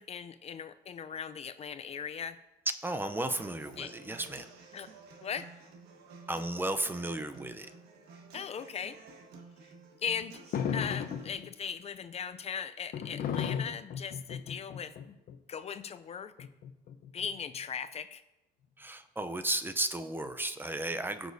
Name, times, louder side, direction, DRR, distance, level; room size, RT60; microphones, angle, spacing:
voice 1, 0.0-2.4 3.8-3.9 4.7-4.9 5.2-5.5 8.3-9.0 10.0-15.2 15.5-16.3 17.1-18.2, left 7 dB, 40° left, 11 dB, 0.5 m, -39 dB
voice 2, 2.8-4.5 6.3-7.7 18.8-21.3, right 1 dB, 10° right, 10 dB, 0.6 m, -34 dB
Human voice / Acoustic guitar, 3.4-11.4, right 3 dB, 75° right, 1.6 m, -52 dB
sound 1, 10.5-11.5 12.9-15.4 16.4-17.4, left 8 dB, 60° left, 0.8 m, -35 dB
17.0 x 6.1 x 2.7 m, 0.94 s
cardioid pair, 110°, 17 cm